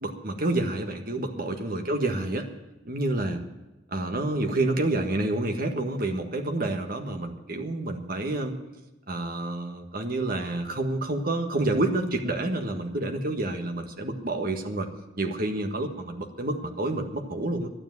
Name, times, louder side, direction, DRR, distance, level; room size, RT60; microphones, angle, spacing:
voice 1, 0.0-2.5 2.8-3.4 3.9-8.6 9.1-14.9 15.2-17.7, right 2 dB, 45° right, 4 dB, 1.6 m, -28 dB
12.0 x 9.8 x 9.4 m, 1.0 s
head